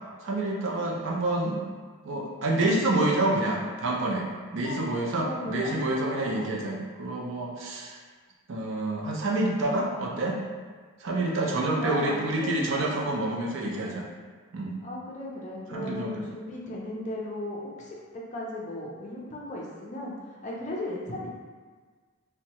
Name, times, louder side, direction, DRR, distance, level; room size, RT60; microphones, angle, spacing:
voice 1, 0.2-1.6 2.0-4.3 4.5-8.0 8.5-10.4 11.0-14.1 14.5-14.8 15.7-16.2, right 2 dB, 60° right, -2 dB, 0.4 m, -28 dB
voice 2, 0.8-1.1 4.6-4.8 5.1-6.5 11.5-12.9 14.8-21.4, left 1 dB, 35° left, -4 dB, 0.5 m, -37 dB
2.7 x 2.1 x 2.9 m, 1.5 s
head